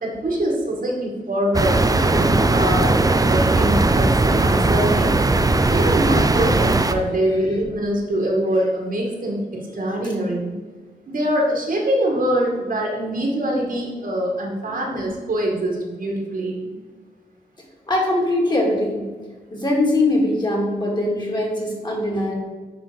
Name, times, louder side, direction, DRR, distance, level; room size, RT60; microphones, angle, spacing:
voice 1, 0.0-5.2 5.7-9.4 9.7-10.5 11.1-16.6, right 1 dB, 60° right, -1 dB, 2.1 m, -23 dB
sound 1, 1.5-6.9, right 2 dB, 20° right, 0.6 m, -18 dB
voice 2, 17.9-19.1 19.5-22.4, left 1 dB, 25° left, -2 dB, 2.5 m, -22 dB
10.0 x 4.0 x 5.2 m, 1.3 s
cardioid pair, 75°, 16 cm